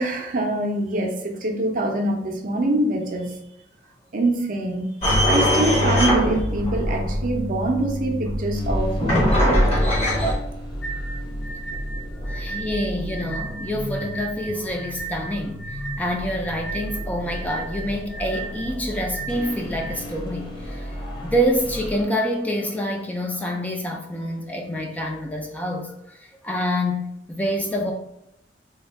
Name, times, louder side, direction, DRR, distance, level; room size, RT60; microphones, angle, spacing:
voice 1, 0.0-3.3 4.1-4.9 5.2-9.7, right 1 dB, 50° right, 0.5 m, -24 dB
sound 1, 5.0-10.3, equal, 35° left, 0.9 m, -21 dB
sound 2, 8.5-22.0, equal, 55° left, 1.5 m, -34 dB
sound 3, 10.8-20.0, right 3 dB, 90° left, 0.6 m, -36 dB
voice 2, 12.3-27.9, equal, 10° left, 0.4 m, -27 dB
3.5 x 2.3 x 3.3 m
head